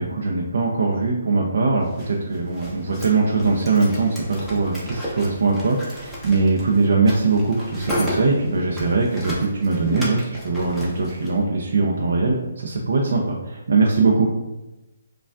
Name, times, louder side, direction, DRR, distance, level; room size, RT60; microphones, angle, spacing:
voice 1, 0.0-14.3, right 3 dB, 65° right, -2 dB, 0.6 m, -21 dB
sound 1, 1.9-11.3, equal, ahead, 0.6 m, -33 dB
5.0 x 2.3 x 2.4 m, 1.0 s
hypercardioid pair, 170°, 0 cm